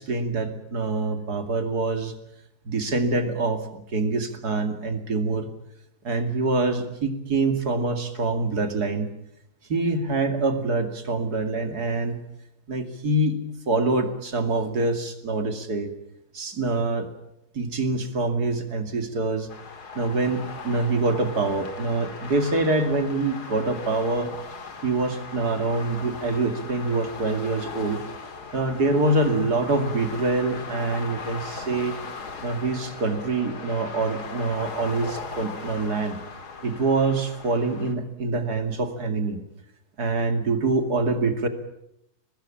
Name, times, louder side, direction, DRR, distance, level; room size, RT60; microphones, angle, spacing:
voice 1, 0.0-2.1 2.6-5.5 6.0-9.1 9.7-12.2 12.7-13.4 13.7-15.9 16.3-17.1 17.5-19.5 19.9-24.3 24.8-28.0 28.5-32.0 32.4-36.2 36.6-39.4 40.0-41.5, right 3 dB, 80° right, 7 dB, 3.0 m, -25 dB
sound 1, 19.5-37.9, left 4 dB, 85° left, 2.8 m, -39 dB
24.0 x 20.0 x 8.7 m, 0.80 s
omnidirectional pair, 1.7 m